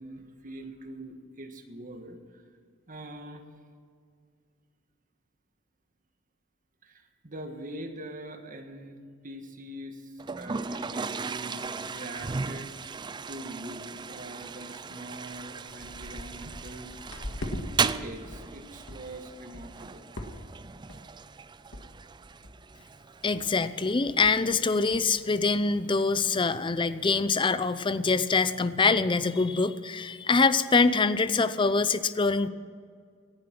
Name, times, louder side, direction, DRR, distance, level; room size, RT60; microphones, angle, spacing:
voice 1, 0.0-2.4 2.9-3.5 6.8-17.2 17.6-20.1, right 1 dB, 45° right, 5 dB, 1.6 m, -43 dB
Toilet flush, 10.2-27.2, right 5 dB, 25° right, 0.4 m, -37 dB
sound 1, 11.7-11.8 12.2-12.3 12.6-13.0 13.3-13.6 14.2-14.3 14.9-15.0 15.3-17.6 18.0-18.5 18.9-19.1 19.5-19.8 20.2-20.6 20.9-21.2 21.7-21.8 22.1-22.2 22.4-22.8 23.3-23.5 23.7-23.8 24.0-24.5 24.9-25.0, left 1 dB, 85° left, 1.8 m, -41 dB
voice 2, 23.2-32.5, left 4 dB, 25° left, 14 dB, 0.5 m, -24 dB
17.5 x 11.5 x 6.0 m, 2.1 s
head